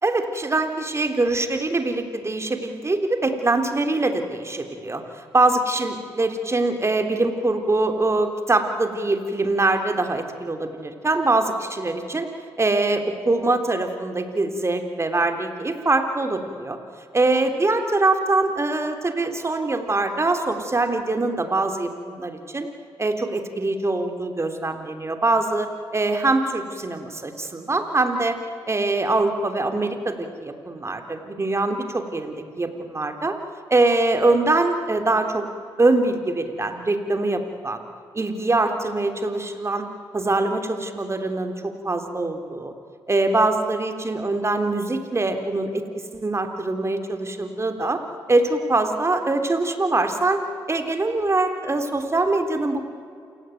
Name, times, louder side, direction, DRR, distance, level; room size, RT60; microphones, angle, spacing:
voice 1, 0.0-5.0 5.3-12.3 12.6-16.8 17.1-22.7 23.0-28.4 28.7-33.4 33.7-35.5 35.8-37.8 38.1-39.9 40.1-42.7 43.1-48.0 48.3-50.4 50.7-52.9, right 2 dB, 30° right, 6 dB, 3.5 m, -23 dB
28.0 x 18.0 x 9.3 m, 2.4 s
supercardioid pair, 55°, 9 cm